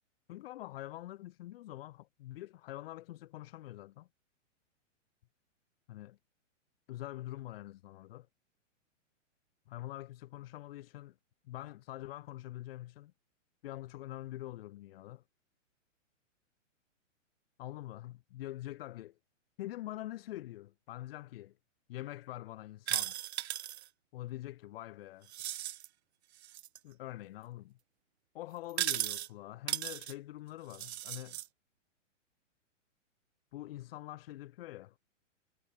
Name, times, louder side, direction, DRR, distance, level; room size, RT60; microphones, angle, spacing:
voice 1, 0.3-4.1 5.9-6.2 6.9-8.3 9.7-11.1 11.4-13.1 13.6-15.2 17.6-19.1 19.6-21.5 21.9-23.2 24.1-25.3 26.8-27.8 28.3-31.4 33.5-35.0, left 15 dB, 50° left, 5.8 m, -45 dB
sound 1, 22.9-23.9 25.3-25.9 26.4-26.8 28.7-29.3 29.7-30.1 30.7-31.5, right 13 dB, 55° right, 1.2 m, -36 dB
hypercardioid pair, 150°, 38 cm